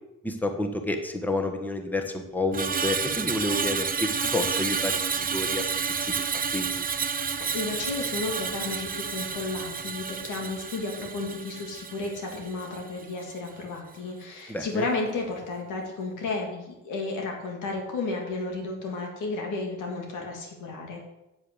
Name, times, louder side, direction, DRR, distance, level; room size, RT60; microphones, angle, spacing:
voice 1, 0.2-5.7 6.0-6.9 14.5-14.9, left 2 dB, 5° left, 5 dB, 1.5 m, -30 dB
Screech, 2.5-12.9 13.2-13.5, right 6 dB, 30° right, 0.7 m, -30 dB
voice 2, 7.2-21.0, left 3 dB, 85° left, 1 dB, 2.9 m, -33 dB
8.0 x 7.4 x 8.1 m, 0.94 s
cardioid pair, 90°, 30 cm